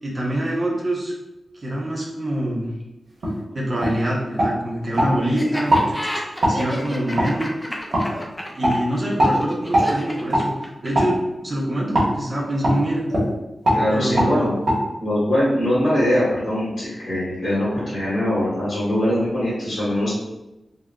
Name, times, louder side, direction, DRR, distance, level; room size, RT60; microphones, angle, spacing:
voice 1, 0.0-1.1 1.5-2.7 3.5-5.8 6.1-7.5 8.5-13.1 13.9-14.5, right 1 dB, 35° right, -4 dB, 0.6 m, -25 dB
sound 1, 3.2-3.4 3.8-4.0 4.4-5.1 5.7-5.9 6.4-6.6 7.2-7.3 7.9-8.1 8.6-8.8 9.2-9.4 9.7-9.9 10.3-10.5 10.9-11.1 11.9-12.1 12.6-12.8 13.1-13.3 13.6-13.8 14.2-14.3 14.7-14.8, equal, 65° right, 1.0 m, -19 dB
Laughter, 5.3-11.1, left 1 dB, 10° left, 0.4 m, -31 dB
voice 2, 13.7-14.5 15.0-20.1, left 1 dB, 65° left, -11 dB, 1.4 m, -22 dB
3.6 x 2.1 x 2.2 m, 0.96 s
wide cardioid pair, 135°, 0 cm